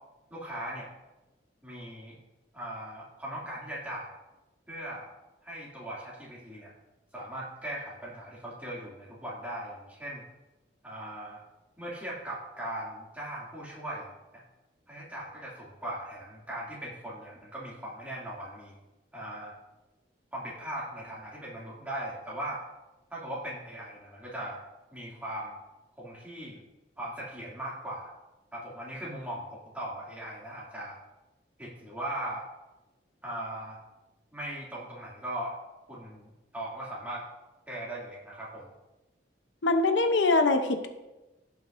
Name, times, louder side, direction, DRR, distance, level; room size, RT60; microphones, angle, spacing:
voice 1, 0.3-0.9 1.6-2.2 2.5-4.1 4.7-5.1 5.4-6.7 7.1-10.2 10.8-11.4 11.8-14.1 14.9-18.7 19.1-19.5 20.3-22.6 23.1-24.6 24.9-25.5 26.0-26.6 27.0-28.1 28.5-31.0 31.6-32.4 33.2-33.8 34.3-35.6 35.9-37.2 37.7-38.7, right 1 dB, 10° right, -7 dB, 2.4 m, -39 dB
voice 2, 39.6-40.9, left 3 dB, 75° left, 6 dB, 0.7 m, -23 dB
16.5 x 5.8 x 2.6 m, 1.0 s
head